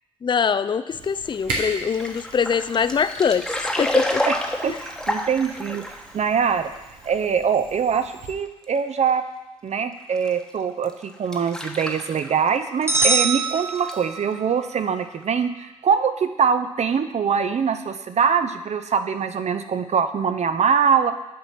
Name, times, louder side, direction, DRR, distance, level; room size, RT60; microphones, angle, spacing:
voice 1, 0.2-4.2, left 6 dB, 35° left, 13 dB, 0.4 m, -23 dB
Camera, 0.9-8.3, right 2 dB, 85° right, 1.1 m, -38 dB
sound 1, 1.4-6.2 6.8-6.9 7.0-7.1 7.5-7.6 8.6-8.7 10.1-10.3 10.8-12.6 12.9-14.0 14.3-14.4 14.7-14.9 15.2-15.3, left 1 dB, 5° left, 1.0 m, -29 dB
voice 2, 4.6-5.8 6.1-6.7 7.0-9.2 9.6-21.1, right 6 dB, 50° right, 9 dB, 0.6 m, -23 dB
sound 2, 12.9-14.4, right 3 dB, 20° right, 0.8 m, -23 dB
8.5 x 3.0 x 5.7 m, 1.0 s
hypercardioid pair, 40°, 14 cm